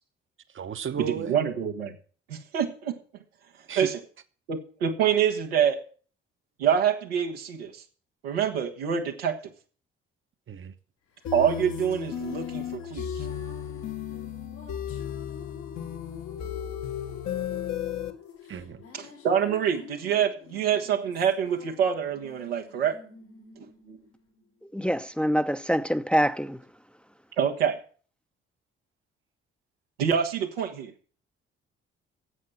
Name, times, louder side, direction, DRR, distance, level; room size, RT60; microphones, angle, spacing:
voice 1, 0.5-1.4 3.7-3.9 10.5-10.7 18.5-18.8, right 8 dB, 45° right, 1.1 m, -34 dB
voice 2, 1.1-1.9 2.3-3.0 3.7-4.0 4.5-5.8 6.6-7.8 8.2-9.4 11.3-13.1 18.9-23.0 23.6-24.0 27.4-27.8 30.0-30.9, right 8 dB, 90° right, 1.6 m, -26 dB
sound 1, 11.2-24.8, left 7 dB, 90° left, 4.1 m, -45 dB
sound 2, 11.2-18.1, left 9 dB, 65° left, 1.5 m, -34 dB
voice 3, 24.6-26.6, equal, 5° left, 0.8 m, -25 dB
11.0 x 7.8 x 8.5 m
hypercardioid pair, 45°, 29 cm